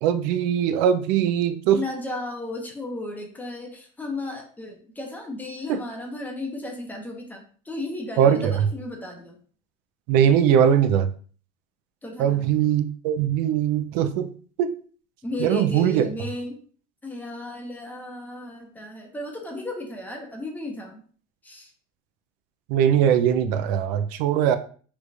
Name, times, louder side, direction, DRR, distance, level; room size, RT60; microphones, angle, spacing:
voice 1, 0.0-1.8 5.7-5.8 8.2-8.6 10.1-11.1 12.2-14.3 14.6-14.7 15.4-16.1 22.7-24.6, right 9 dB, 80° right, 10 dB, 0.5 m, -21 dB
voice 2, 1.7-9.4 12.0-12.5 15.2-16.6 17.0-21.0 21.4-21.7, left 2 dB, 10° left, 2 dB, 0.5 m, -34 dB
3.3 x 3.2 x 2.5 m, 0.43 s
cardioid pair, 165°, 21 cm